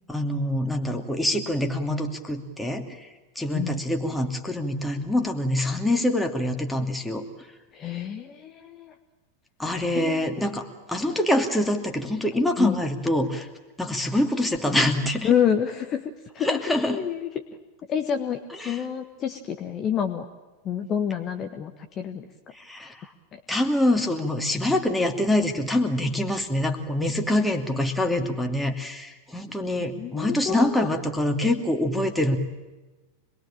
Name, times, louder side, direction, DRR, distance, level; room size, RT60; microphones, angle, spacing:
voice 1, 0.1-3.1 3.4-7.2 9.6-13.5 13.8-15.3 16.4-17.0 18.6-18.8 22.5-23.1 23.5-32.4, left 1 dB, 5° left, 4 dB, 2.6 m, -25 dB
voice 2, 7.7-8.9 9.9-10.3 12.6-12.8 15.2-17.4 17.9-20.3 20.6-22.3 23.3-23.4 30.0-30.9, left 8 dB, 30° left, 6 dB, 1.5 m, -28 dB
26.5 x 21.0 x 8.9 m, 1.2 s
figure-of-eight pair, 90°, 0 cm